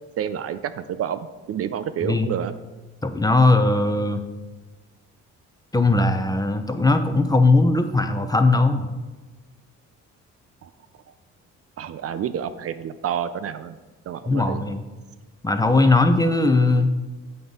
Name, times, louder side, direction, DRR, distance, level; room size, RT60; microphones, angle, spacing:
voice 1, 0.2-1.2 1.5-2.5 10.6-10.7 11.8-13.8 14.1-14.7 15.8-15.9, right 9 dB, 50° right, 12 dB, 0.4 m, -29 dB
voice 2, 3.0-4.2 5.7-8.9 14.3-14.8 15.4-16.9, left 2 dB, 15° left, 8 dB, 0.6 m, -19 dB
7.8 x 3.7 x 5.4 m, 1.2 s
cardioid pair, 90°, 30 cm